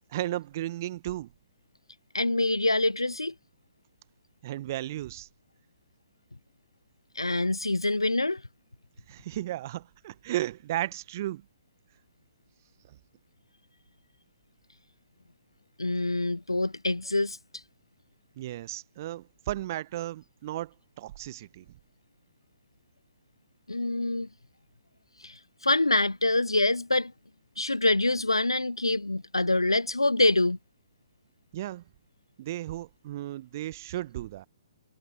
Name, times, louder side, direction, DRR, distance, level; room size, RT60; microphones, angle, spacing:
voice 1, 0.1-1.3 4.4-5.3 9.1-11.4 12.9-13.0 18.4-21.6 31.5-31.8 32.4-34.5, right 14 dB, 40° right, 1.2 m, -34 dB
voice 2, 2.1-3.3 7.1-8.4 15.8-17.6 23.7-24.3 25.2-27.1 27.6-30.6, left 2 dB, 85° left, 0.5 m, -26 dB
figure-of-eight pair, 130°, 3 cm